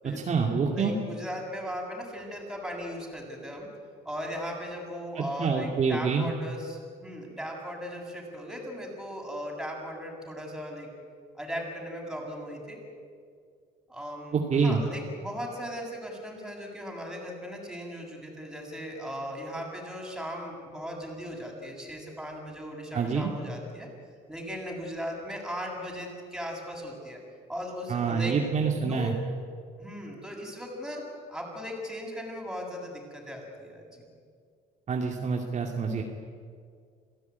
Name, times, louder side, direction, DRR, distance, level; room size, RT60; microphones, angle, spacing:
voice 1, 0.0-0.9 5.2-6.3 14.3-14.8 22.9-23.3 27.9-29.1 34.9-36.0, right 5 dB, 45° right, 1 dB, 2.6 m, -27 dB
voice 2, 0.7-3.7 4.0-10.9 11.4-12.8 13.9-23.9 24.3-27.2 27.5-28.4 28.7-29.1 29.8-31.0 31.3-34.1, equal, 5° right, -1 dB, 7.5 m, -38 dB
27.0 x 17.0 x 9.6 m, 2.1 s
cardioid pair, 110°, 17 cm